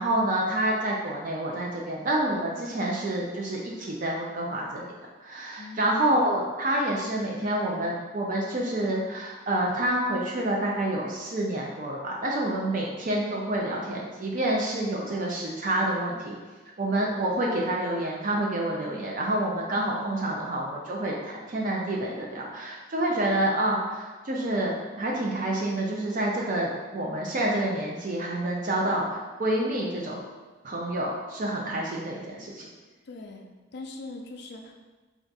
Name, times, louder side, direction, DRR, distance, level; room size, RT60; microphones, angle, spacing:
voice 1, 0.0-4.8 5.2-16.3 16.8-30.2 30.6-32.6, right 1 dB, 40° right, -2 dB, 0.4 m, -28 dB
voice 2, 5.6-6.0 33.1-33.5 33.7-34.7, left 2 dB, 55° left, 2 dB, 0.4 m, -41 dB
3.4 x 2.4 x 3.9 m, 1.3 s
head